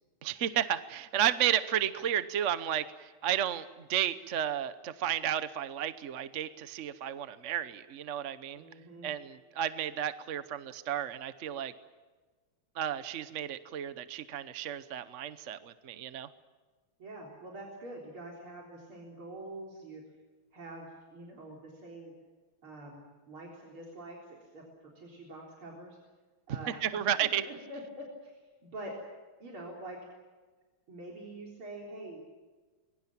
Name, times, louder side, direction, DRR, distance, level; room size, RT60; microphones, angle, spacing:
voice 1, 0.2-8.6 9.0-11.7 12.8-16.3 26.5-27.5, right 10 dB, 50° right, 13 dB, 0.9 m, -32 dB
voice 2, 8.6-9.1 17.0-20.0 20.5-22.1 22.6-26.0 26.5-26.8 27.2-28.9 29.4-30.0 30.9-32.2, right 1 dB, 80° right, -2 dB, 4.8 m, -45 dB
26.0 x 22.5 x 7.3 m, 1.3 s
omnidirectional pair, 2.3 m